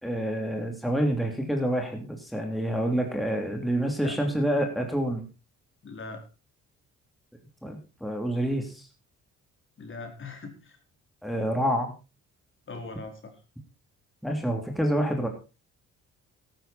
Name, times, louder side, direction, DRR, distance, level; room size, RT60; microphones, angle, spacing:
voice 1, 0.0-5.2 7.6-8.9 11.2-11.9 14.2-15.3, equal, ahead, 2 dB, 3.1 m, -27 dB
voice 2, 5.8-6.2 9.8-10.8 12.7-13.3, left 3 dB, 40° left, 4 dB, 4.2 m, -40 dB
13.5 x 12.5 x 4.3 m, 0.30 s
cardioid pair, 90°, 30 cm